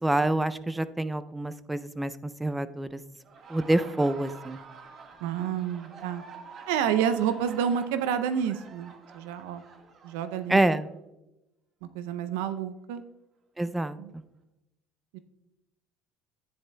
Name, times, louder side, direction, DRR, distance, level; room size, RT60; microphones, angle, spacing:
voice 1, 0.0-3.0 3.5-4.6 10.5-10.9 13.6-14.2, right 1 dB, 10° right, 13 dB, 0.4 m, -27 dB
Laughter, 3.1-10.8, right 5 dB, 50° right, 1.5 m, -47 dB
voice 2, 5.2-6.2 6.7-9.6 10.0-10.6 11.9-13.0 14.0-14.1 15.1-15.2, right 8 dB, 80° right, 11 dB, 0.5 m, -29 dB
11.0 x 9.7 x 2.2 m, 0.95 s
hypercardioid pair, 75°, 0 cm